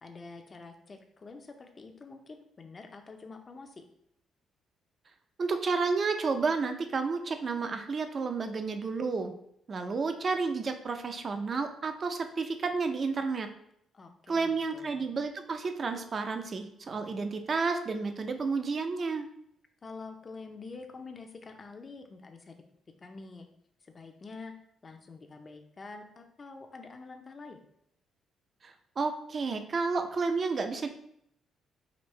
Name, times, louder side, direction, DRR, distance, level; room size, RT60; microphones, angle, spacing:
voice 1, 0.0-3.8 13.9-15.1 19.8-22.6 23.0-23.5 23.8-24.5 24.8-27.6, left 4 dB, 35° left, 5 dB, 0.6 m, -47 dB
voice 2, 5.4-9.3 9.7-13.5 14.3-19.3 28.6-30.9, right 4 dB, 45° right, 7 dB, 0.5 m, -31 dB
5.1 x 2.6 x 3.2 m, 0.72 s
cardioid pair, 90°, 0 cm